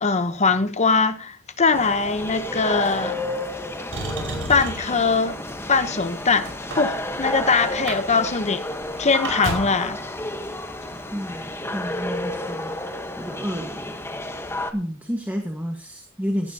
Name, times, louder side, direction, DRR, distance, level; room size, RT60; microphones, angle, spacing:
voice 1, 0.0-3.2 4.5-5.4 5.7-8.6 9.0-10.0, left 4 dB, 30° left, 0.9 m, -21 dB
sound 1, 1.7-14.7, left 1 dB, 10° left, 1.2 m, -31 dB
Motor vehicle (road), 3.9-5.0 5.8-7.4 7.7-8.0 8.3-8.4 8.7-9.9 10.9-11.0, right 2 dB, 60° right, 5.1 m, -32 dB
voice 2, 11.1-12.7 13.2-13.9 14.7-16.5, equal, 10° right, 1.4 m, -30 dB
17.0 x 11.5 x 2.8 m
head